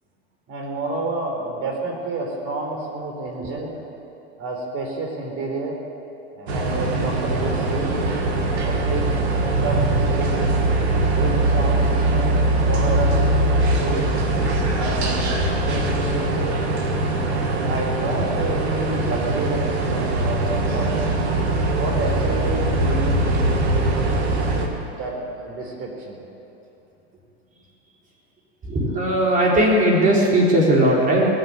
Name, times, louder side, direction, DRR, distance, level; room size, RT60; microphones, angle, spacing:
voice 1, 0.5-3.8 4.4-5.8 6.3-7.9 8.6-9.2 9.6-10.5 11.1-12.4 12.7-13.3 13.7-14.1 14.7-16.6 17.6-21.0 21.8-24.2 24.9-26.2, right 3 dB, 45° right, 1 dB, 4.0 m, -29 dB
sound 1, 6.5-24.7, right 2 dB, 85° right, 2.2 m, -21 dB
voice 2, 28.6-31.3, right 1 dB, 25° right, -4 dB, 4.3 m, -18 dB
19.5 x 7.8 x 9.0 m, 2.9 s
hypercardioid pair, 110°, 32 cm